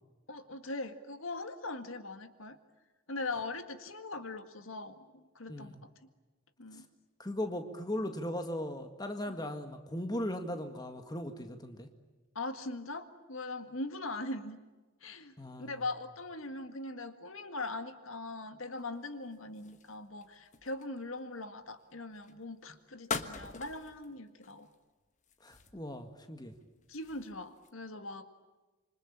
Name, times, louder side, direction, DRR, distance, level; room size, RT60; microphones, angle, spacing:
voice 1, 0.3-2.6 3.1-5.8 6.6-6.9 9.3-9.4 12.4-14.6 15.0-24.7 26.9-28.3, left 2 dB, 80° left, 9 dB, 1.9 m, -41 dB
voice 2, 5.5-5.8 7.2-11.9 15.4-15.8 25.4-26.6, left 1 dB, 20° left, 6 dB, 1.8 m, -38 dB
sound 1, 18.8-21.2 22.1-22.4 23.0-24.1 24.4-24.8 25.2-26.0 26.5-27.7, left 5 dB, 35° left, 1.3 m, -43 dB
27.0 x 25.5 x 8.8 m, 1.2 s
head